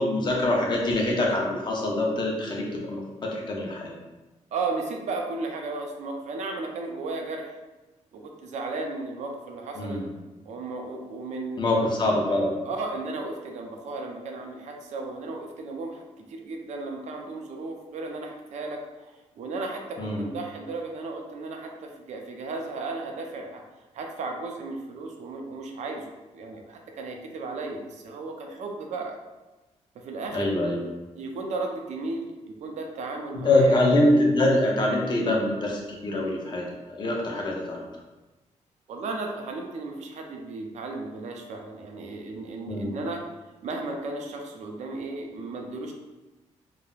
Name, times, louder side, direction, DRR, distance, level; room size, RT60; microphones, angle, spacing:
voice 1, 0.0-3.9 9.8-10.1 11.6-12.5 20.0-20.2 30.3-30.8 33.4-37.8 42.6-42.9, left 1 dB, 35° left, -1 dB, 0.5 m, -24 dB
voice 2, 4.5-7.5 8.1-10.0 10.5-12.2 12.6-23.6 23.9-29.2 29.9-30.6 31.2-33.8 38.9-43.2 43.6-45.9, right 3 dB, 65° right, 2 dB, 0.4 m, -35 dB
3.1 x 2.1 x 2.3 m, 1.1 s
wide cardioid pair, 150°, 13 cm